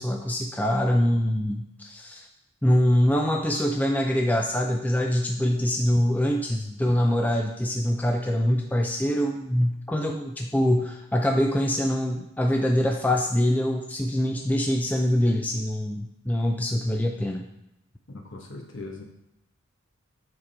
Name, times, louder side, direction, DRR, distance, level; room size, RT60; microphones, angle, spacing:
voice 1, 0.0-2.2 2.6-17.4, equal, 10° left, 2 dB, 0.4 m, -24 dB
voice 2, 18.1-19.0, left 2 dB, 60° left, 2 dB, 1.2 m, -40 dB
7.3 x 4.7 x 4.2 m, 0.84 s
head